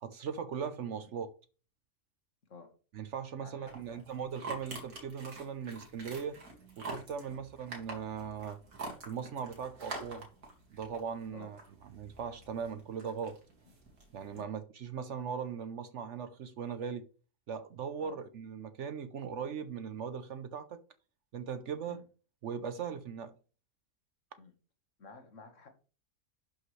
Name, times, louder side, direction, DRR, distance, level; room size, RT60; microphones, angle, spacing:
voice 1, 0.0-1.3 2.9-6.3 6.8-8.6 9.0-10.3 10.7-13.4 14.1-17.0 17.5-20.8 21.3-22.0 22.4-23.3, right 7 dB, 60° right, 0.9 m, -39 dB
voice 2, 3.4-4.0 7.3-7.4 11.3-11.5 14.3-14.5 18.0-18.2 21.9-22.0 24.4-24.5 25.0-25.7, left 4 dB, 60° left, 1.7 m, -52 dB
sound 1, 3.7-14.4, right 3 dB, 85° right, 2.6 m, -47 dB
11.5 x 5.7 x 3.2 m
omnidirectional pair, 1.5 m